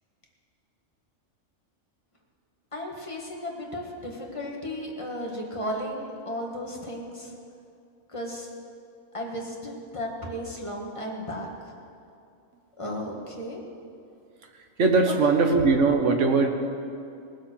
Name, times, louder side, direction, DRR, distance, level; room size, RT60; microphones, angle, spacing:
voice 1, 2.7-7.4 8.1-8.5 9.1-11.7 12.8-13.6 15.0-15.2, equal, 25° left, -1 dB, 1.8 m, -34 dB
voice 2, 14.8-16.5, right 4 dB, 65° right, 4 dB, 1.5 m, -20 dB
19.0 x 7.8 x 6.3 m, 2.5 s
omnidirectional pair, 1.3 m